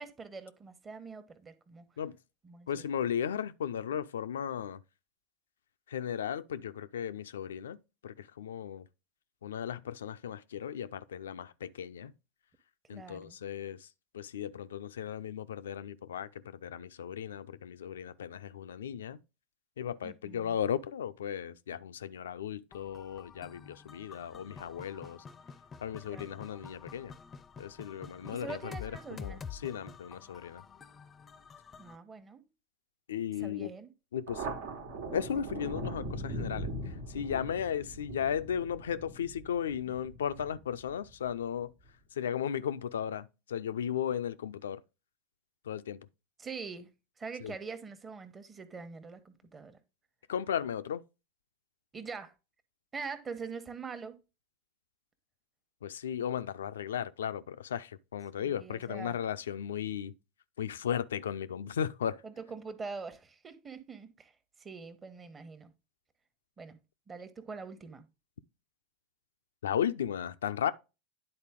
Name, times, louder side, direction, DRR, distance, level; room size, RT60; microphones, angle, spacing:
voice 1, 0.0-1.9 2.4-2.8 12.9-13.4 20.0-20.6 26.1-26.4 28.3-29.4 31.8-32.4 33.4-33.9 46.4-46.9 47.2-49.8 51.9-52.3 52.9-54.2 58.3-59.2 62.2-64.3 64.6-65.7 66.6-66.8 67.1-68.1, right 5 dB, 25° right, 1.0 m, -44 dB
voice 2, 2.7-4.8 5.9-7.8 8.0-8.8 9.4-12.1 12.9-13.9 14.1-19.2 19.8-25.2 25.8-27.1 27.6-30.6 33.1-33.7 34.1-34.5 35.1-36.7 37.1-41.7 42.2-44.8 45.7-46.1 47.4-47.5 50.3-51.0 55.8-60.1 60.6-62.2 69.6-70.7, left 8 dB, 80° left, 0.4 m, -35 dB
sound 1, 22.7-32.0, left 6 dB, 25° left, 0.5 m, -48 dB
Thunder, 34.3-41.3, right 1 dB, 70° right, 1.3 m, -40 dB
9.8 x 4.0 x 3.6 m
hypercardioid pair, 90°, 0 cm